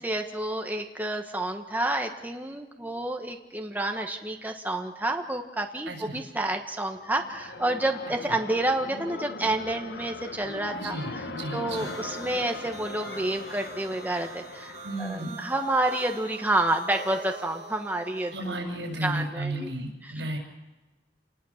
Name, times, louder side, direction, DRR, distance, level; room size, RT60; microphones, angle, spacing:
voice 1, 0.0-18.3 19.0-19.7 20.0-20.1, right 1 dB, 10° right, 3 dB, 1.3 m, -29 dB
voice 2, 5.9-6.2 8.3-8.4 10.7-12.0 14.8-15.4 18.3-20.4, right 1 dB, 75° right, 3 dB, 6.9 m, -34 dB
sound 1, 6.9-15.7, left 3 dB, 65° left, 1.2 m, -40 dB
sound 2, 11.7-18.6, right 4 dB, 40° right, 2.8 m, -44 dB
29.0 x 20.0 x 7.2 m, 1.2 s
head